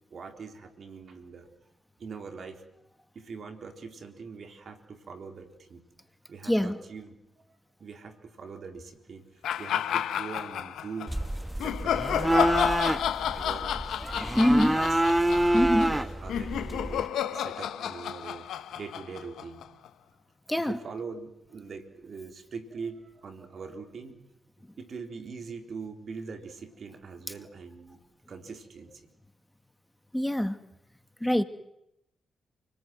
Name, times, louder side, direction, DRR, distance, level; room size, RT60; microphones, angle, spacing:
voice 1, 0.1-1.5 2.0-2.6 3.1-5.9 6.3-7.1 7.8-9.2 9.6-11.2 11.6-12.5 13.3-13.8 14.5-15.0 15.6-19.7 20.6-24.2 24.8-28.0 28.3-29.0, right 5 dB, 60° right, 5 dB, 4.0 m, -42 dB
voice 2, 6.4-6.8 14.1-14.8 15.5-15.9 20.5-20.8 30.1-30.6 31.2-31.4, equal, 5° left, 9 dB, 2.1 m, -24 dB
sound 1, 9.4-11.1 11.6-19.9, left 10 dB, 75° left, 1.1 m, -31 dB
sound 2, 11.1-17.1, right 1 dB, 10° right, 1.3 m, -27 dB
29.5 x 20.0 x 9.3 m, 0.83 s
hypercardioid pair, 40°, 0 cm